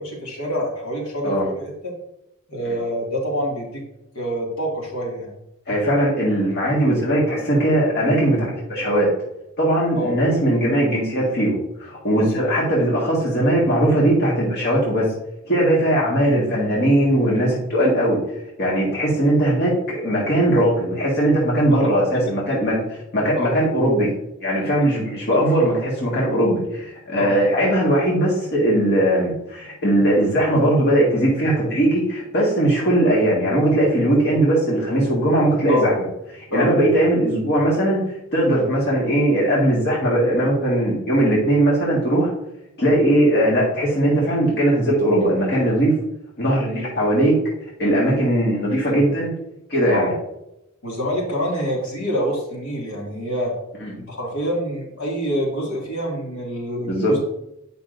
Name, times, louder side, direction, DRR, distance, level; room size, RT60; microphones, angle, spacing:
voice 1, 0.0-1.3 1.8-1.9 2.5-3.8 4.1-5.3 10.0-10.1 12.2-12.4 21.7-22.0 23.3-23.6 25.3-25.7 27.2-27.4 35.7-35.9 36.5-37.0 49.9-50.1 50.8-53.5 54.0-57.2, equal, 75° left, -2 dB, 2.2 m, -26 dB
voice 2, 5.7-9.1 9.6-15.1 15.5-18.2 18.6-22.8 23.1-24.1 24.4-36.1 36.5-38.0 38.3-42.3 42.8-45.9 46.4-47.3 47.8-49.3 49.7-50.1 53.8-53.9 56.9-57.1, right 1 dB, 50° left, -5 dB, 1.7 m, -19 dB
8.6 x 5.5 x 2.6 m, 0.84 s
head